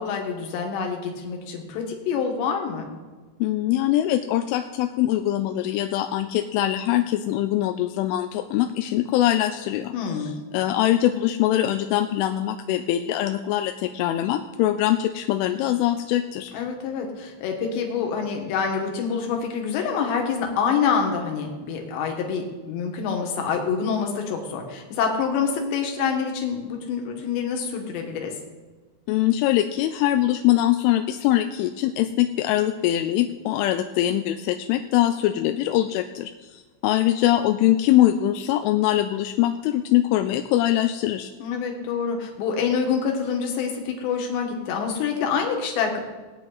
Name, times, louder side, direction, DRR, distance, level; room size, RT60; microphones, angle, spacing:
voice 1, 0.0-2.9 9.9-10.4 16.5-28.3 41.4-46.0, left 6 dB, 65° left, 2 dB, 3.5 m, -26 dB
voice 2, 3.4-9.9 10.2-16.5 29.1-41.3, left 13 dB, 85° left, 6 dB, 2.9 m, -23 dB
20.0 x 9.2 x 4.1 m, 1.3 s
omnidirectional pair, 5.9 m